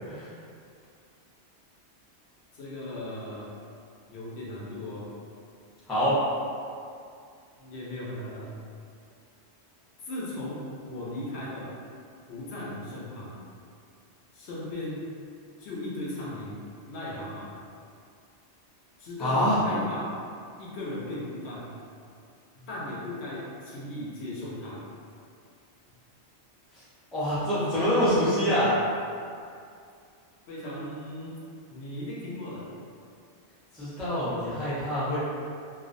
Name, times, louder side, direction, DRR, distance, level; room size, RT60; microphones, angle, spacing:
voice 1, 2.5-3.5 4.1-5.1 7.6-8.5 10.0-11.7 12.3-13.3 14.3-15.1 15.6-16.6 16.9-17.5 19.0-20.1 20.6-21.7 22.6-24.8 30.5-31.4 31.7-32.7, left 1 dB, 75° left, -6 dB, 0.8 m, -37 dB
voice 2, 19.2-19.6 27.1-28.8 33.7-35.2, equal, ahead, -11 dB, 0.3 m, -25 dB
2.4 x 2.0 x 2.5 m, 2.4 s
omnidirectional pair, 1.2 m